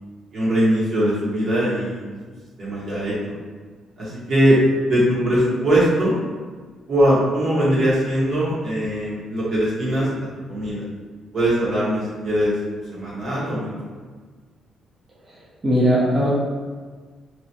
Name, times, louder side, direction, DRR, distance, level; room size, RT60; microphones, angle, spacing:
voice 1, 0.3-2.0 2.6-3.4 4.0-6.2 6.9-10.1 10.5-10.8 11.3-12.5 12.9-13.7, equal, 60° right, -8 dB, 1.3 m, -21 dB
voice 2, 15.3-16.3, equal, 30° right, -9 dB, 0.7 m, -20 dB
3.0 x 2.4 x 2.8 m, 1.5 s
cardioid pair, 90°, 0 cm